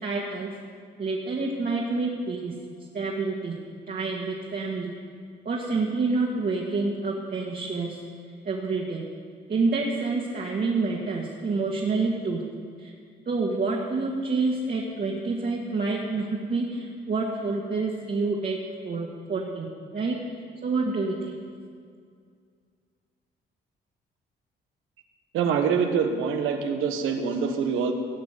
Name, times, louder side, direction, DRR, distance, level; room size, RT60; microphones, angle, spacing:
voice 1, 0.0-0.5 1.0-2.5 2.9-3.6 3.9-4.9 5.4-8.0 8.4-9.0 9.5-12.4 12.8-12.9 13.3-18.6 18.8-19.7 19.9-20.2 20.6-21.4, right 3 dB, 45° right, -3 dB, 2.0 m, -28 dB
voice 2, 25.3-27.9, right 6 dB, 90° right, 5 dB, 1.4 m, -25 dB
17.0 x 6.0 x 9.4 m, 2.2 s
cardioid pair, 90°, 20 cm